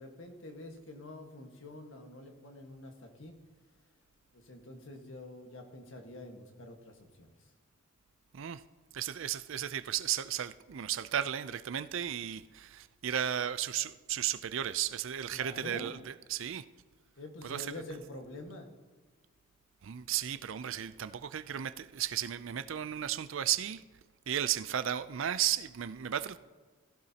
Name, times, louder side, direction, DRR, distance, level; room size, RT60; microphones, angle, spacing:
voice 1, 0.0-3.4 4.3-7.5 15.3-15.9 17.2-18.7, left 1 dB, 65° left, 1.5 m, -47 dB
voice 2, 8.9-16.6 17.4-17.7 19.8-23.8 24.3-26.4, right 10 dB, 65° right, 0.4 m, -34 dB
16.0 x 15.0 x 2.9 m
head